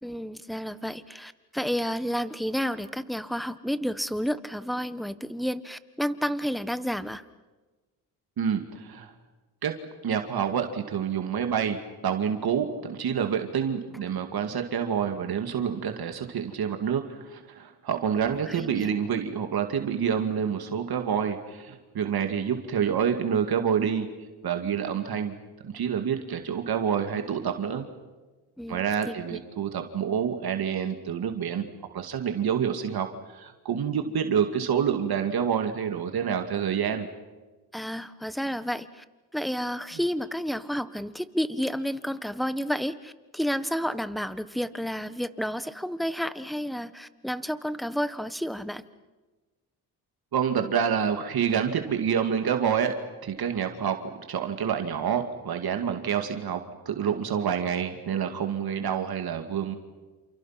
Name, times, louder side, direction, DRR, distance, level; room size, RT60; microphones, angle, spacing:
voice 1, 0.0-7.2 18.1-18.9 28.6-29.4 37.7-39.0 39.3-48.9, equal, ahead, 13 dB, 1.4 m, -31 dB
voice 2, 8.4-9.1 9.6-9.7 10.0-24.1 24.4-25.4 25.6-27.9 28.7-31.7 31.9-33.1 33.3-37.1 50.3-53.0 53.2-59.7, right 8 dB, 65° right, 6 dB, 2.3 m, -27 dB
29.5 x 28.0 x 5.9 m, 1.3 s
cardioid pair, 75°, 41 cm